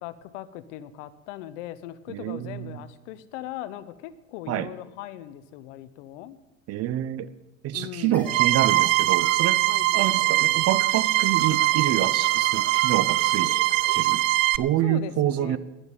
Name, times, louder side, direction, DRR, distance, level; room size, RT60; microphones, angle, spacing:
voice 1, 0.0-6.4 7.7-8.3 9.6-10.2 14.8-15.6, left 13 dB, 65° left, 14 dB, 1.0 m, -39 dB
voice 2, 2.1-2.8 4.5-4.7 6.7-7.3 7.6-9.6 9.9-13.5 13.9-14.2 14.6-15.6, right 12 dB, 40° right, 15 dB, 0.8 m, -27 dB
sound 1, 8.1-9.6 9.9-10.6 10.8-14.4, left 1 dB, 5° left, 3.2 m, -46 dB
sound 2, 8.3-14.6, right 18 dB, 75° right, 0.6 m, -22 dB
Typing, 10.9-13.6, right 3 dB, 60° right, 5.5 m, -53 dB
11.0 x 8.0 x 9.2 m, 1.0 s
hypercardioid pair, 100°, 39 cm